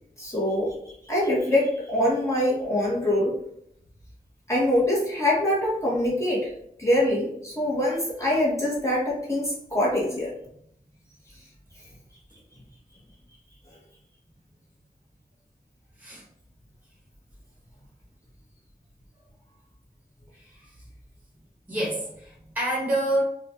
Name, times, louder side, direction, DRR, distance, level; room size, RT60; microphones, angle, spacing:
voice 1, 0.2-0.7 1.0-3.4 4.5-6.5 6.8-10.3, left 1 dB, 20° left, -6 dB, 1.4 m, -24 dB
voice 2, 21.7-23.2, right 1 dB, 10° right, -4 dB, 1.4 m, -27 dB
4.1 x 2.5 x 2.8 m, 0.72 s
wide cardioid pair, 55°, 16 cm